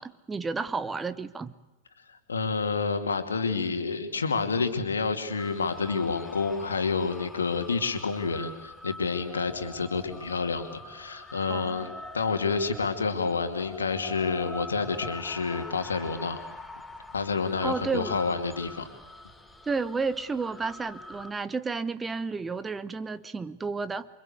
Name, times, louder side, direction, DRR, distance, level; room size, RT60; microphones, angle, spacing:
voice 1, 0.0-1.5 11.5-11.9 17.6-18.2 19.7-24.1, right 4 dB, 15° right, 14 dB, 1.0 m, -32 dB
voice 2, 2.3-16.4 17.1-18.9, left 4 dB, 75° left, 7 dB, 2.6 m, -29 dB
sound 1, 5.4-21.3, left 1 dB, 5° left, 2.0 m, -44 dB
28.0 x 24.5 x 8.2 m, 0.98 s
figure-of-eight pair, 90°, 0 cm